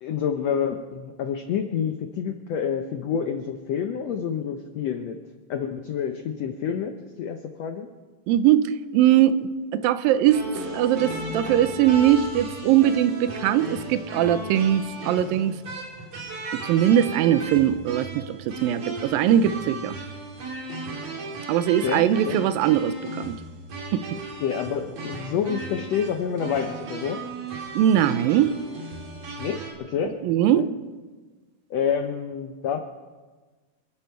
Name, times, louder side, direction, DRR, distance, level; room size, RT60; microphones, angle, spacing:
voice 1, 0.0-5.2 5.5-7.9 21.8-22.4 24.4-27.2 29.4-30.1 30.5-30.7 31.7-32.8, left 7 dB, 85° left, 6 dB, 1.4 m, -28 dB
voice 2, 8.3-15.5 16.7-20.0 21.5-23.4 23.9-24.0 27.8-28.5 30.2-30.7, right 11 dB, 80° right, 13 dB, 2.4 m, -21 dB
sound 1, 10.2-29.7, right 2 dB, 50° right, 3.4 m, -36 dB
26.5 x 11.5 x 4.5 m, 1.3 s
omnidirectional pair, 4.1 m